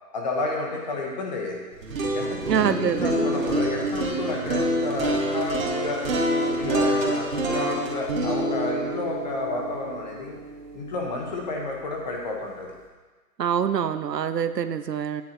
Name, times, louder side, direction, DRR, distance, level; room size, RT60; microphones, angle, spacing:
voice 1, 0.1-1.6 2.1-6.0 6.5-10.4 10.7-12.7, left 2 dB, 25° left, 0 dB, 1.3 m, -31 dB
sound 1, 1.7-11.8, right 1 dB, 55° right, 2.0 m, -27 dB
voice 2, 2.4-3.4 13.4-15.2, right 8 dB, 80° right, 11 dB, 0.7 m, -25 dB
9.4 x 7.5 x 4.5 m, 1.3 s
hypercardioid pair, 160°, 49 cm